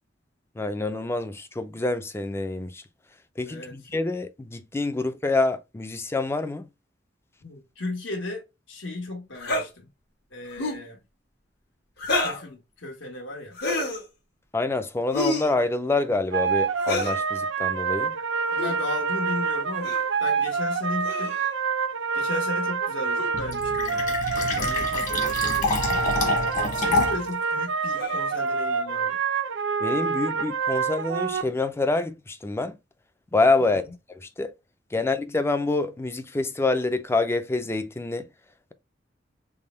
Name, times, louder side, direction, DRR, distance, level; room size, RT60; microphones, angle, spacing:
voice 1, 0.6-2.8 3.4-6.7 14.5-18.1 29.8-32.8 33.3-33.8 34.2-34.5 34.9-38.3, left 3 dB, 15° left, 0.3 m, -26 dB
voice 2, 3.4-3.8 7.4-9.9 10.3-11.0 12.2-13.6 18.5-21.3 22.1-24.2 24.5-26.3 26.7-29.2 33.6-33.9, left 2 dB, 80° left, 1.2 m, -35 dB
sound 1, 9.4-9.7 10.5-10.9 12.0-12.5 13.5-14.0 15.1-15.5 16.8-17.2 18.5-18.8 19.8-20.1 21.0-21.5 23.2-23.3 24.3-24.5 25.2-25.4 26.2-26.4 27.9-28.3, left 2 dB, 60° left, 1.1 m, -29 dB
sound 2, 16.3-31.4, right 5 dB, 85° right, 0.5 m, -27 dB
Fill (with liquid), 23.3-27.3, left 2 dB, 40° left, 1.3 m, -27 dB
3.5 x 2.1 x 4.2 m
head